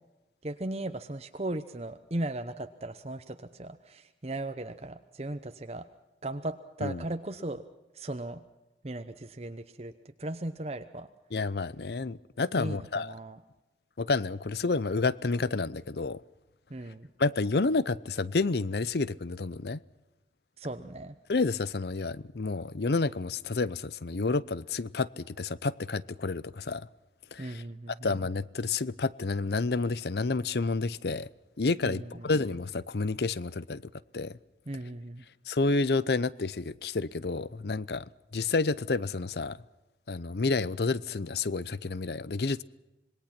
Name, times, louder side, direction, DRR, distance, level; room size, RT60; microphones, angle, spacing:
voice 1, 0.4-5.8 6.2-7.6 8.0-8.4 8.8-9.9 10.2-11.1 12.6-13.4 16.7-17.1 20.6-21.1 27.4-28.2 31.8-32.3 34.7-35.2, right 1 dB, 35° right, 0.9 m, -37 dB
voice 2, 11.3-13.1 14.0-16.2 17.2-19.8 21.3-26.9 27.3-27.6 28.0-31.3 31.6-33.8 34.1-34.3 35.5-38.0 38.3-39.6 40.1-42.6, left 3 dB, 65° left, 0.7 m, -29 dB
26.5 x 21.0 x 6.0 m
head